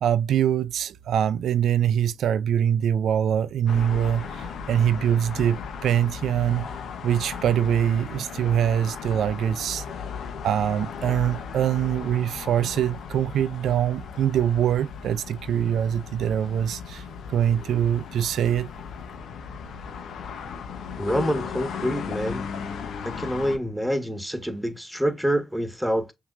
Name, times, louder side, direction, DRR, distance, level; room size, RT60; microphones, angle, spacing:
voice 1, 0.0-6.7 7.0-9.8 10.4-17.0 17.3-18.7, right 9 dB, 80° right, 0.4 m, -23 dB
sound 1, 3.7-23.6, left 6 dB, 80° left, 0.9 m, -36 dB
voice 2, 20.9-22.5 23.0-26.1, equal, ahead, 1.5 m, -27 dB
5.9 x 2.9 x 2.5 m
supercardioid pair, 55°, 0 cm